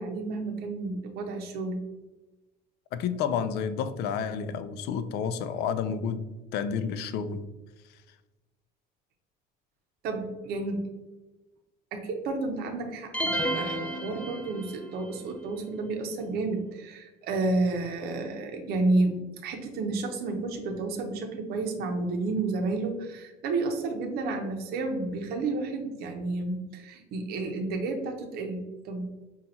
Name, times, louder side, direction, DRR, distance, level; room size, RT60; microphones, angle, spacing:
voice 1, 0.0-1.8 10.0-10.8 11.9-29.1, right 3 dB, 60° right, 4 dB, 0.7 m, -31 dB
voice 2, 2.9-6.3 6.5-7.5, left 7 dB, 65° left, 12 dB, 0.4 m, -30 dB
sound 1, 13.1-15.0, right 1 dB, 5° left, 0.4 m, -31 dB
5.2 x 2.4 x 2.8 m, 1.1 s
cardioid pair, 120°, 18 cm